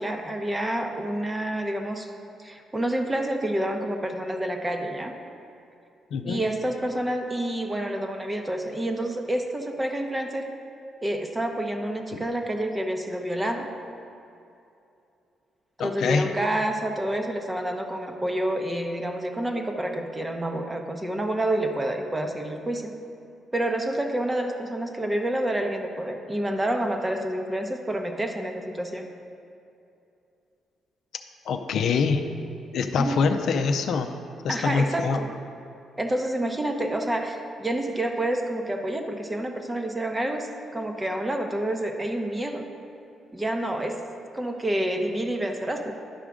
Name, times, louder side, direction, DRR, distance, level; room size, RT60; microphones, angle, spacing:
voice 1, 0.0-2.1 2.4-5.1 6.2-10.5 11.0-13.7 15.8-22.9 23.5-29.1 33.0-33.2 34.5-35.3 36.0-42.7 43.3-44.0 44.3-45.9, right 1 dB, 15° right, 4 dB, 0.8 m, -28 dB
voice 2, 6.1-6.4 12.1-12.2 15.8-16.3 31.5-32.3 32.7-34.1 34.4-35.2, left 5 dB, 70° left, 6 dB, 0.5 m, -24 dB
11.5 x 4.9 x 3.7 m, 2.7 s
cardioid pair, 90°, 0 cm